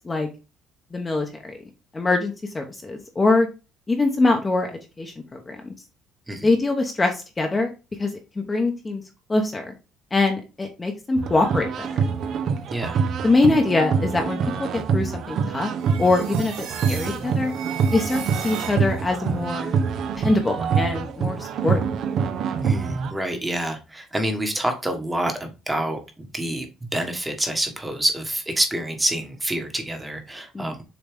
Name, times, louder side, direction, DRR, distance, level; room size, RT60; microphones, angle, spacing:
voice 1, 0.9-1.5 1.9-3.5 3.9-5.7 6.4-7.7 8.0-9.0 9.3-9.7 10.1-11.9 13.2-15.7 16.0-17.5 17.9-19.7 20.2-21.8 30.5-30.7, left 2 dB, 15° left, 3 dB, 1.0 m, -23 dB
sound 1, 11.2-23.1, right 6 dB, 50° right, 0.8 m, -25 dB
voice 2, 12.7-13.0 22.6-26.7 26.9-30.8, right 1 dB, 10° right, 5 dB, 1.3 m, -27 dB
sound 2, 15.8-19.2, right 8 dB, 90° right, 2.1 m, -37 dB
7.0 x 4.0 x 3.5 m, 0.29 s
cardioid pair, 165°, 0 cm